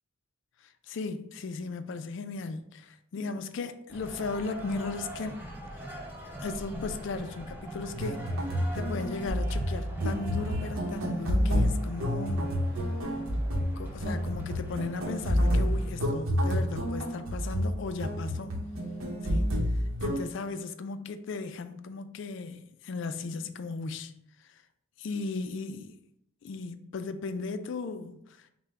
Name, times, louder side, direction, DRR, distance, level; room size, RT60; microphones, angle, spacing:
voice 1, 0.6-5.4 6.4-8.3 8.7-12.5 13.8-18.5 19.2-19.6 20.0-24.1 24.4-24.6 25.0-26.0 26.4-28.5, left 4 dB, 60° left, 0.3 m, -36 dB
sound 1, 3.9-15.9, right 1 dB, 10° right, 0.7 m, -42 dB
sound 2, 7.9-20.2, equal, 70° right, 0.8 m, -29 dB
5.5 x 2.1 x 3.6 m
head